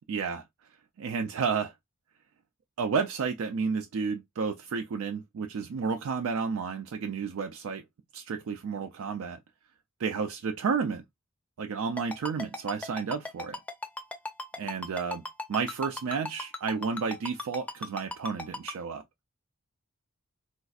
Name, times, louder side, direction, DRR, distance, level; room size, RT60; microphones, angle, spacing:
voice 1, 0.1-0.4 1.0-1.7 2.8-7.8 8.1-9.4 10.0-11.0 11.6-13.6 14.6-15.2 15.5-19.0, right 5 dB, 80° right, 0.4 m, -31 dB
Ringtone, 12.0-18.7, left 2 dB, 5° left, 0.5 m, -36 dB
4.0 x 2.5 x 2.3 m
head